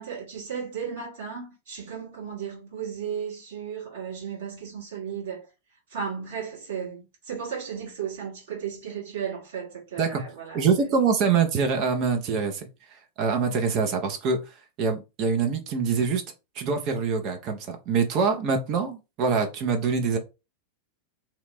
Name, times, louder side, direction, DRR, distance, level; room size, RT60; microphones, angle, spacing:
voice 1, 0.0-5.5 5.9-11.0, right 7 dB, 60° right, 1.8 m, -35 dB
voice 2, 10.5-12.7 13.2-14.4 14.8-16.2 16.6-20.2, right 5 dB, 40° right, 0.6 m, -24 dB
2.9 x 2.5 x 3.2 m
figure-of-eight pair, 90°, 0 cm